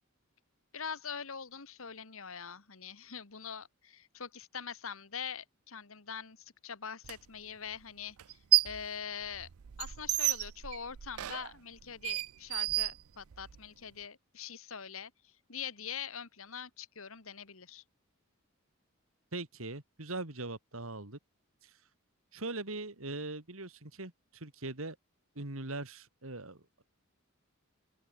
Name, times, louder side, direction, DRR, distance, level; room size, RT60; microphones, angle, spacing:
voice 1, 0.7-8.4 8.6-9.5 9.8-17.8, left 7 dB, 70° left, 1.7 m, -43 dB
sound 1, 7.0-7.1 8.2-8.9 9.2-13.6, right 16 dB, 85° right, 0.5 m, -32 dB
voice 2, 19.3-21.2 21.6-21.7 22.3-25.0 25.3-26.8, right 2 dB, 70° right, 3.1 m, -41 dB
open air
head